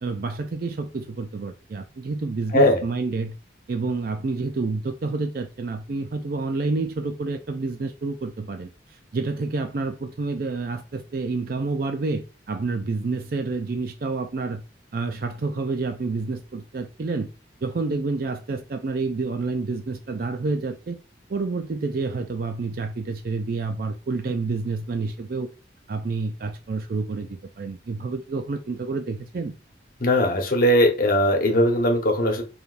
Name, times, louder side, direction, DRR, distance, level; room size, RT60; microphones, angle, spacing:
voice 1, 0.0-3.3 3.7-14.6 14.9-17.3 17.6-21.0 21.3-25.5 25.9-29.5, right 3 dB, 50° right, 0.4 m, -29 dB
voice 2, 30.0-32.4, left 1 dB, 50° left, 1.1 m, -19 dB
4.9 x 3.3 x 2.5 m
head